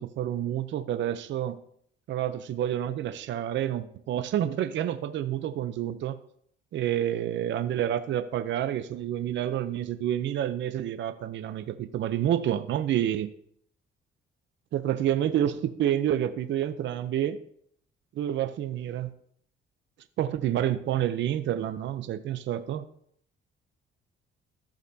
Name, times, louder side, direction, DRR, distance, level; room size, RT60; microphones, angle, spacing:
voice 1, 0.0-1.6 2.1-6.2 6.7-13.3 14.7-17.4 18.2-19.1 20.2-22.9, right 11 dB, 70° right, 11 dB, 0.6 m, -28 dB
14.5 x 6.5 x 2.7 m, 0.66 s
cardioid pair, 90°, 20 cm